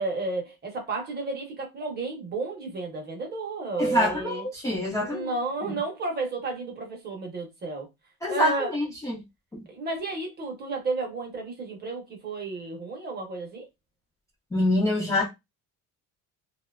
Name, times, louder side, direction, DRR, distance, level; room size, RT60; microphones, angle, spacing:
voice 1, 0.0-4.4 5.0-7.9 8.3-8.8 9.7-13.6, right 3 dB, 30° right, 0.7 m, -32 dB
voice 2, 3.8-5.3 5.6-5.7 8.2-9.2 9.5-9.6 14.5-15.3, left 1 dB, 10° left, 0.4 m, -26 dB
2.7 x 2.2 x 2.2 m
cardioid pair, 170°, 35 cm